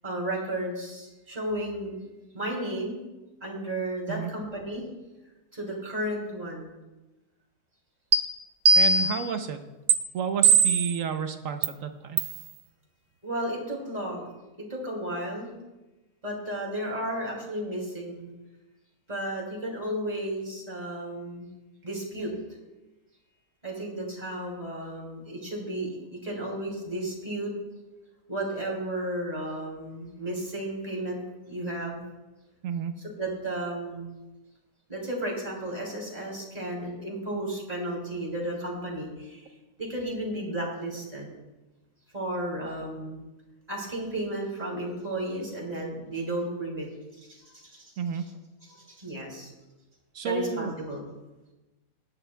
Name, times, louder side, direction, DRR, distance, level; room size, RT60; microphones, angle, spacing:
voice 1, 0.0-2.1 2.3-3.0 3.4-4.8 5.5-6.7 13.2-14.3 14.7-15.5 16.2-18.3 19.1-21.5 21.8-22.3 23.6-27.5 28.3-32.0 33.0-34.1 34.9-39.5 39.8-41.3 42.1-43.2 43.7-46.9 47.2-47.9 48.7-49.5 50.2-51.0, right 1 dB, 25° right, -2 dB, 2.7 m, -33 dB
sound 1, 8.1-8.2 8.7-9.3 9.9-10.0 10.4-11.0 11.6-11.7 12.2-12.4, right 5 dB, 80° right, 1.3 m, -19 dB
voice 2, 8.8-9.6 10.1-12.2 32.6-32.9 48.0-48.2 50.1-50.7, right 6 dB, 60° right, 7 dB, 1.0 m, -31 dB
17.5 x 10.0 x 2.2 m, 1.1 s
omnidirectional pair, 1.7 m